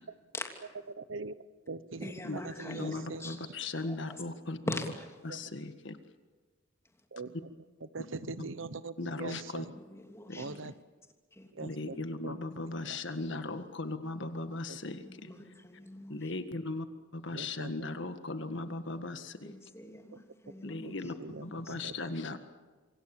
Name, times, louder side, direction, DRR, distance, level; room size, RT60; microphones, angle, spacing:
voice 1, 0.9-1.3 1.7-3.6 5.3-5.4 7.1-9.7 10.4-10.7 11.5-12.0 12.2-12.4 12.8-13.0 14.7-14.8 17.3-17.9 20.8-21.9, right 3 dB, 80° right, 15 dB, 0.9 m, -42 dB
voice 2, 2.0-3.4 3.8-4.2 4.7-5.1 9.8-10.6 11.4-11.5 15.0-16.2 19.4-20.9 21.3-21.7, left 1 dB, 15° left, 3 dB, 3.0 m, -42 dB
voice 3, 2.7-4.8 5.2-6.0 9.0-9.7 10.3-10.4 11.6-15.3 16.1-16.9 17.1-19.5 20.6-21.1 21.4-22.4, left 2 dB, 65° left, 9 dB, 1.7 m, -38 dB
27.0 x 24.5 x 7.2 m, 1.3 s
head